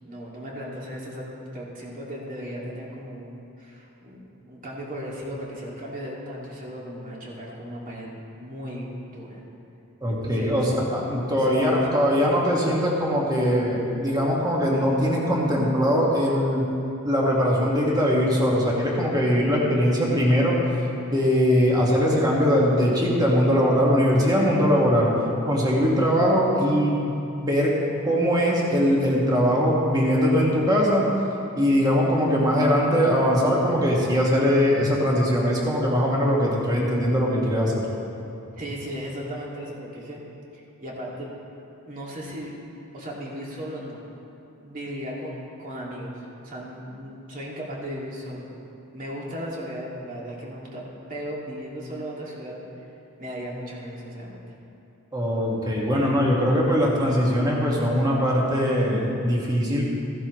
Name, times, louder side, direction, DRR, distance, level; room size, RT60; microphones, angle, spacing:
voice 1, 0.0-9.4 10.1-10.7 11.2-12.0 38.5-40.2 40.5-41.3 41.9-42.5 42.9-44.0 44.6-48.5 48.9-50.8 51.1-52.7 53.2-54.4, equal, 40° right, -4 dB, 2.3 m, -36 dB
voice 2, 10.0-16.7 17.0-20.6 21.1-25.1 25.5-27.1 27.3-27.7 28.0-31.0 31.6-37.8 55.1-59.8, equal, 20° right, -4 dB, 1.9 m, -21 dB
15.0 x 11.0 x 3.2 m, 2.7 s
head